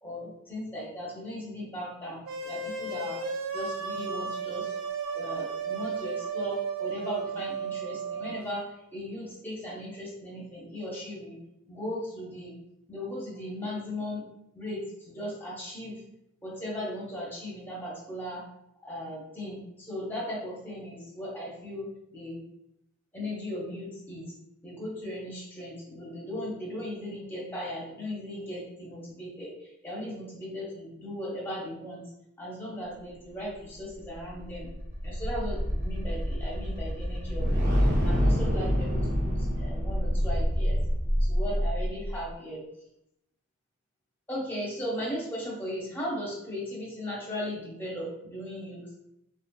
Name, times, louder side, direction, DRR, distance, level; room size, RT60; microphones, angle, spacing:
voice 1, 0.0-3.2 3.5-4.8 5.1-11.4 11.7-12.5 12.9-14.2 14.5-16.0 16.4-18.4 18.8-22.4 23.1-24.3 24.6-32.0 32.4-34.7 35.0-39.0 39.2-40.8 41.2-42.6 44.3-48.8, equal, 10° left, -5 dB, 0.8 m, -37 dB
sound 1, 2.3-8.4, right 5 dB, 75° right, 0.4 m, -34 dB
sound 2, 33.8-42.2, equal, 35° right, 0.8 m, -27 dB
3.2 x 2.4 x 2.2 m, 0.81 s
head